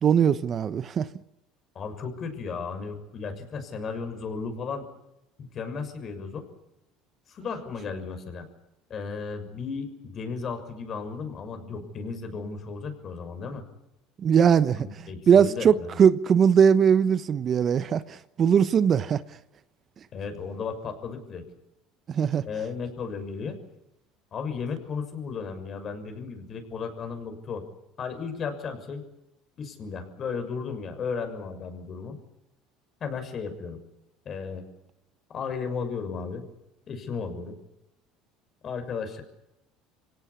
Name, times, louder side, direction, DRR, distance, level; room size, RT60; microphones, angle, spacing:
voice 1, 0.0-1.1 14.2-19.2 22.1-22.4, right 7 dB, 40° right, 1.0 m, -21 dB
voice 2, 1.7-4.8 5.4-6.4 7.3-8.5 8.9-13.6 14.7-16.0 20.1-21.4 22.4-23.6 24.3-27.6 28.0-29.0 29.6-32.1 33.0-33.8 34.2-34.6 35.3-36.4 36.9-37.5 38.6-39.2, left 5 dB, 40° left, 6.4 m, -34 dB
25.0 x 17.5 x 9.8 m
supercardioid pair, 100°, 0 cm